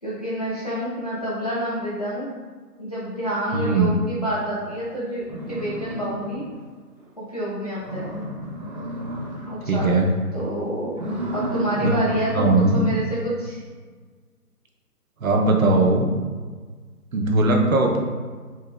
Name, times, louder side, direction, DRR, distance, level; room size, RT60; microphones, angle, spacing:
voice 1, 0.0-2.3 2.8-6.4 7.2-8.2 9.4-9.9 10.3-11.0 11.3-13.6, equal, 25° left, -8 dB, 0.6 m, -28 dB
voice 2, 3.5-3.9 9.7-10.1 11.8-11.9 12.3-12.8 15.2-16.1 17.1-18.0, right 2 dB, 60° right, 1 dB, 0.7 m, -19 dB
sound 1, 4.7-4.8 5.2-6.6 7.0-7.1 7.5-7.6 7.8-9.7 10.0-10.4 10.9-12.9, right 1 dB, 25° right, 0.7 m, -32 dB
5.5 x 2.8 x 2.2 m, 1.5 s
figure-of-eight pair, 155°, 48 cm